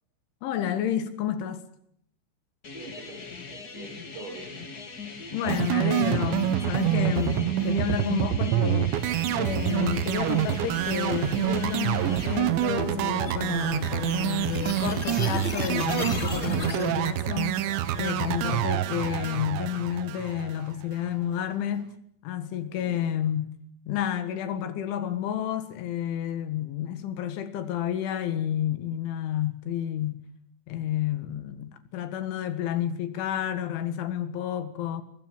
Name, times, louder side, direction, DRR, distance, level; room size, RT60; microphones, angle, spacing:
voice 1, 0.4-1.6 5.3-8.9 9.4-21.9 22.2-23.5 23.9-30.2 30.7-35.0, left 10 dB, 75° left, 4.1 m, -30 dB
sound 1, 2.6-12.4, left 4 dB, 50° left, 1.1 m, -41 dB
voice 2, 2.7-4.7 22.7-23.1, right 3 dB, 50° right, 8.8 m, -44 dB
sound 2, 5.5-20.8, right 12 dB, 75° right, 3.3 m, -27 dB
sound 3, 9.0-17.0, left 2 dB, 20° left, 2.0 m, -38 dB
23.0 x 21.0 x 9.3 m
omnidirectional pair, 5.6 m